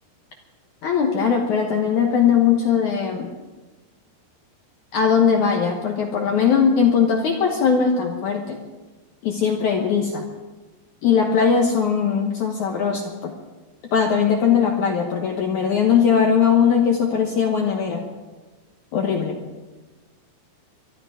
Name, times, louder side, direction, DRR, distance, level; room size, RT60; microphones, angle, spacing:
voice 1, 0.8-3.3 4.9-8.6 9.2-10.2 11.0-13.3 13.9-18.0 18.9-19.4, left 7 dB, 80° left, 2 dB, 1.7 m, -20 dB
24.5 x 11.5 x 5.0 m, 1.2 s
omnidirectional pair, 5.2 m